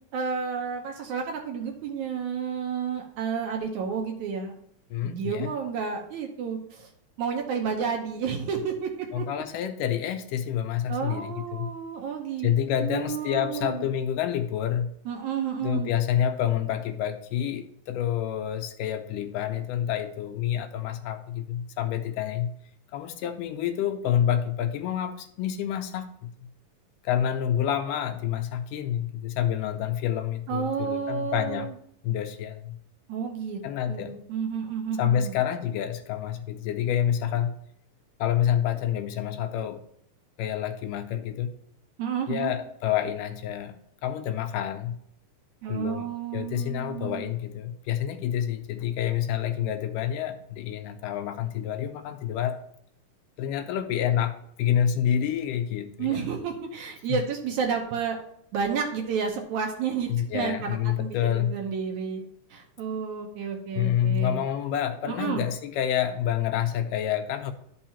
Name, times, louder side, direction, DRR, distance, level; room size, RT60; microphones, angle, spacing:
voice 1, 0.1-4.5 5.0-6.9 7.2-9.3 10.9-12.5 12.8-13.9 15.1-15.9 30.5-31.7 33.1-33.6 33.9-35.3 42.0-42.5 45.6-47.3 56.0-58.2 58.5-62.2 62.5-64.4 65.1-65.4, right 6 dB, 70° right, 2 dB, 2.0 m, -31 dB
voice 2, 4.9-5.5 9.1-11.7 12.4-14.9 15.6-22.5 22.9-26.3 27.0-31.7 32.0-32.8 33.6-34.2 35.0-37.5 38.2-39.8 40.4-41.5 42.3-45.0 45.7-52.7 53.4-56.3 57.1-57.2 60.1-61.6 63.8-67.5, left 10 dB, 80° left, 7 dB, 2.1 m, -28 dB
12.0 x 5.6 x 2.9 m, 0.68 s
omnidirectional pair, 3.9 m